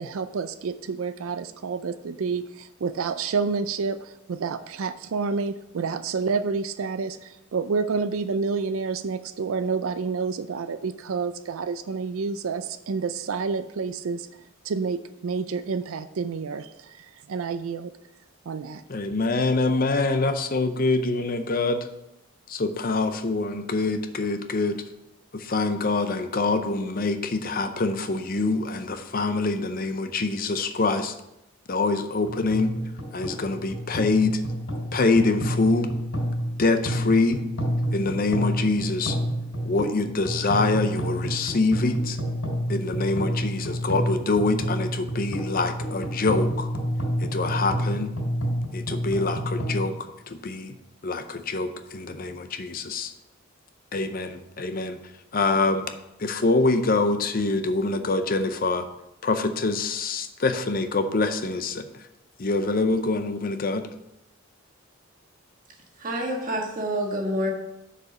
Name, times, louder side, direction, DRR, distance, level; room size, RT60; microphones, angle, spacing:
voice 1, 0.0-14.3 14.6-17.9 18.5-18.8, right 5 dB, 80° right, 11 dB, 0.4 m, -29 dB
voice 2, 18.9-21.8 22.5-24.8 25.5-31.1 31.7-32.7 33.1-34.4 34.9-35.9 36.6-37.4 37.9-39.2 39.6-42.2 42.7-46.7 47.3-48.1 48.7-49.9 50.3-50.7 51.0-53.1 53.9-55.0 55.3-55.8 56.2-58.8 59.2-61.8 62.4-63.8, left 3 dB, 45° left, 8 dB, 0.6 m, -25 dB
sound 1, 32.2-49.9, equal, 90° left, 3.4 m, -29 dB
voice 3, 66.0-67.5, equal, 40° right, 1 dB, 1.5 m, -27 dB
6.6 x 5.0 x 6.7 m, 0.88 s
head